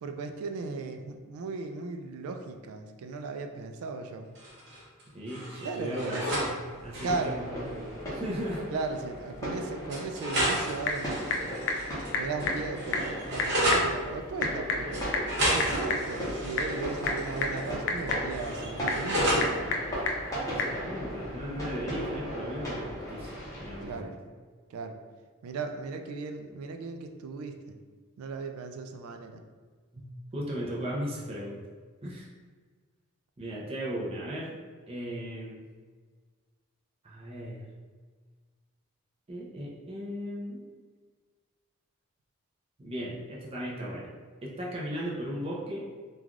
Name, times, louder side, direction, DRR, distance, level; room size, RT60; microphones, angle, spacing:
voice 1, 0.0-4.3 5.6-6.3 7.0-7.4 8.7-11.5 12.1-15.1 15.5-19.8 23.8-24.1 24.7-25.0 25.4-27.8 28.2-29.4, right 4 dB, 90° right, 6 dB, 0.3 m, -36 dB
sound 1, 4.4-5.0 5.3-6.5 6.8-7.3 8.4-8.5 8.8-8.9 9.9-12.1 12.4-13.9 14.9-17.7 18.0-19.5, equal, 55° right, 0.8 m, -31 dB
voice 2, 5.1-8.7 20.4-24.1 29.9-30.1 30.3-31.6 32.0-32.3 33.4-34.6 34.9-35.6 37.0-37.6 39.3-40.6 42.8-44.1 44.4-45.9, equal, 25° right, -4 dB, 0.5 m, -36 dB
sound 2, 6.7-23.9, equal, 15° left, 0.6 m, -37 dB
Typing / Telephone, 10.3-20.8, left 3 dB, 60° left, 0.4 m, -34 dB
3.2 x 2.3 x 2.4 m, 1.5 s
head